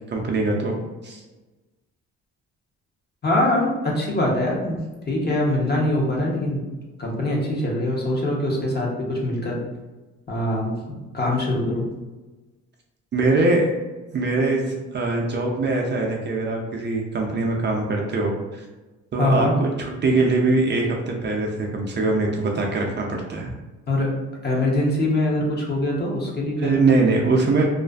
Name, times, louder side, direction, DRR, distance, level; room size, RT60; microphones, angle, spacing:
voice 1, 0.1-0.7 1.0-1.2 13.1-13.7 14.1-18.6 19.1-23.5 26.6-27.7, right 3 dB, 35° right, 0 dB, 0.4 m, -22 dB
voice 2, 3.2-4.8 5.1-6.6 7.0-9.6 10.3-11.8 19.2-19.5 23.9-24.1 24.4-26.7, left 1 dB, 35° left, -2 dB, 0.7 m, -23 dB
2.4 x 2.4 x 2.3 m, 1.2 s
cardioid pair, 90°, 30 cm